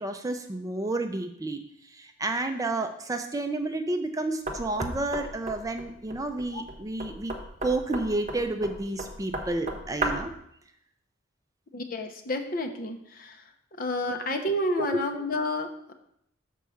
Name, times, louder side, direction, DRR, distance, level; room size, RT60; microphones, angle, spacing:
voice 1, 0.0-1.6 1.9-7.3 7.6-10.3 14.1-14.3 14.8-14.9, right 2 dB, 15° right, 6 dB, 0.5 m, -30 dB
Knock, 4.5-10.4, right 1 dB, 35° right, 1.1 m, -35 dB
voice 2, 11.7-13.4 13.8-15.9, left 1 dB, 45° left, 5 dB, 0.9 m, -30 dB
6.7 x 4.6 x 6.3 m, 0.73 s
head